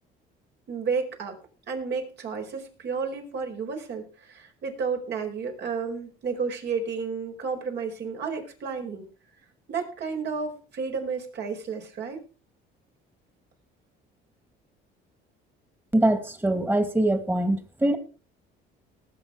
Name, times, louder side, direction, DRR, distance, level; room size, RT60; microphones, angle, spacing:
voice 1, 0.7-1.4 1.7-9.1 9.7-12.2, right 5 dB, 60° right, 3 dB, 4.9 m, -32 dB
voice 2, 15.9-18.0, right 1 dB, 10° right, 10 dB, 2.2 m, -23 dB
19.0 x 7.9 x 4.8 m, 0.35 s
cardioid pair, 100°, 20 cm